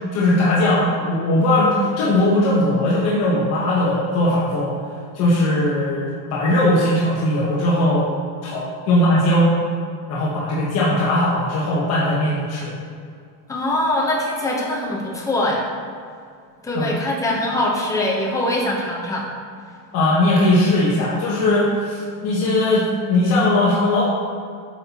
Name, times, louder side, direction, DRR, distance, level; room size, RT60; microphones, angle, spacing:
voice 1, 0.1-4.7 5.1-8.1 8.4-9.5 10.1-12.7 16.7-16.9 19.9-24.0, left 1 dB, 35° left, -7 dB, 1.1 m, -19 dB
voice 2, 13.5-15.6 16.6-19.3, left 1 dB, 10° left, -2 dB, 0.8 m, -22 dB
8.6 x 5.5 x 2.9 m, 2.3 s
cardioid pair, 160°, 43 cm